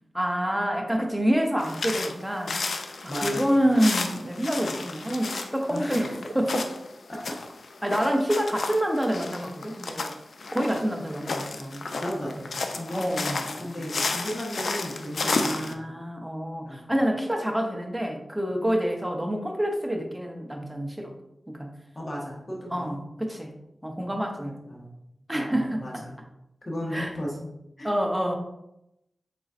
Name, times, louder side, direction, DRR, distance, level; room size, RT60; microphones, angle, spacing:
voice 1, 0.1-2.6 3.0-6.7 7.8-10.2 10.5-12.0 12.9-13.7 15.2-21.1 21.5-21.7 22.7-23.5 23.8-24.6 25.3-26.0 26.9-27.1 27.8-28.4, equal, 10° right, 2 dB, 0.7 m, -27 dB
sound 1, 1.6-15.7, left 3 dB, 75° left, 0.4 m, -32 dB
voice 2, 3.1-3.5 5.7-6.1 7.1-7.3 12.0-15.8 16.6-16.9 21.9-22.9 24.1-24.9 25.3-26.1 26.6-27.5 27.8-27.9, equal, 40° left, -3 dB, 1.2 m, -35 dB
4.1 x 3.8 x 2.4 m, 0.85 s
wide cardioid pair, 70°, 0 cm